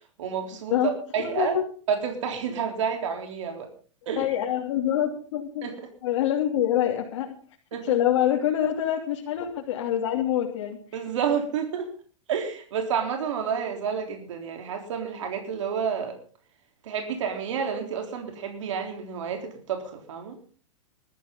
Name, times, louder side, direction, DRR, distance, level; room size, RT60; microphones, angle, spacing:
voice 1, 0.2-1.6 1.9-3.7 4.1-4.3 5.6-5.9 7.7-8.0 10.9-11.9 12.3-16.1 16.8-20.4, right 7 dB, 75° right, 3 dB, 3.7 m, -30 dB
voice 2, 1.2-1.6 4.2-5.7 6.0-7.4 7.8-10.8, left 11 dB, 65° left, -2 dB, 3.1 m, -25 dB
20.5 x 13.5 x 3.9 m, 0.40 s
supercardioid pair, 150°, 16 cm